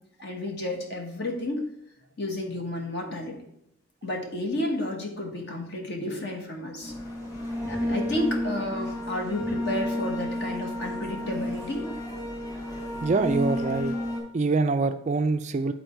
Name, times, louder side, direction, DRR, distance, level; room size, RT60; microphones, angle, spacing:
voice 1, 0.2-1.6 2.2-3.4 4.0-6.9 7.7-11.9, left 1 dB, 50° left, 2 dB, 1.5 m, -31 dB
sound 1, 6.8-14.2, left 1 dB, 15° left, 2.7 m, -31 dB
voice 2, 13.0-13.9 14.3-15.7, right 3 dB, 35° right, 9 dB, 0.3 m, -25 dB
9.3 x 4.3 x 4.5 m, 0.76 s
head